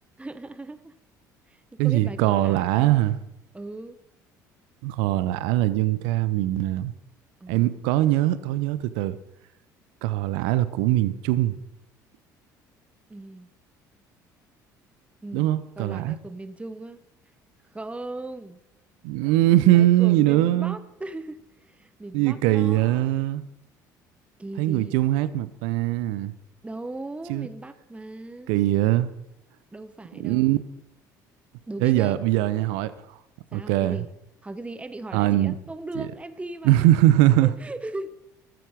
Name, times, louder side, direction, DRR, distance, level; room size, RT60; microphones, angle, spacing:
voice 1, 0.2-1.0 1.5-3.1 3.5-4.0 7.4-7.7 13.1-13.5 15.2-17.0 17.7-18.6 19.2-23.1 24.4-25.0 26.6-28.5 29.7-30.6 31.7-32.4 33.5-34.1 34.4-36.9 37.4-38.3, right 2 dB, 10° right, 13 dB, 1.0 m, -38 dB
voice 2, 1.8-3.1 4.8-6.9 7.5-9.2 10.0-11.6 15.3-16.2 19.0-20.8 22.1-23.4 24.6-26.3 27.3-27.5 28.5-29.1 30.2-30.6 31.8-32.9 33.5-34.0 35.1-35.5 36.0-36.1 36.6-37.5, right 15 dB, 70° right, 15 dB, 0.8 m, -21 dB
14.0 x 13.0 x 5.1 m, 0.83 s
hypercardioid pair, 60°, 10 cm